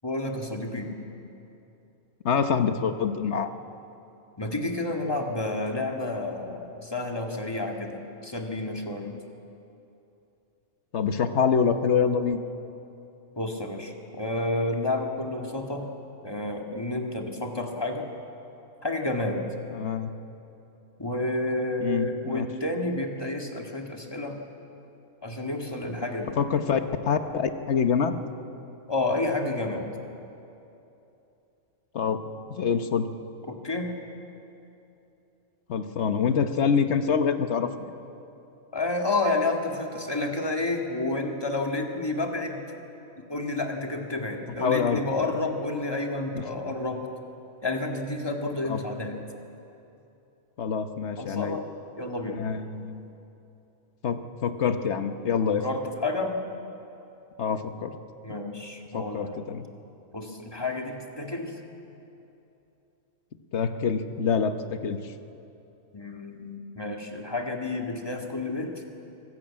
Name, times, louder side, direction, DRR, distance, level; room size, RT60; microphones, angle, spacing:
voice 1, 0.0-0.9 4.4-9.2 13.4-15.9 16.2-18.1 18.8-19.5 21.0-24.4 25.2-26.4 28.9-29.9 33.5-33.9 38.7-42.6 43.2-47.1 47.6-49.2 51.2-51.6 52.0-52.4 55.4-56.4 58.2-59.4 60.1-61.6 65.9-68.8, left 2 dB, 15° left, 2 dB, 2.0 m, -30 dB
voice 2, 2.2-3.5 10.9-12.4 19.7-20.1 21.8-22.5 26.4-28.2 31.9-32.2 32.5-33.1 35.7-37.9 44.6-45.0 46.3-46.4 48.7-48.8 50.6-51.6 52.3-53.1 54.0-55.6 57.4-58.0 58.9-59.6 63.5-65.1, left 6 dB, 55° left, 8 dB, 1.3 m, -26 dB
25.0 x 15.5 x 8.7 m, 2.9 s
omnidirectional pair, 1.5 m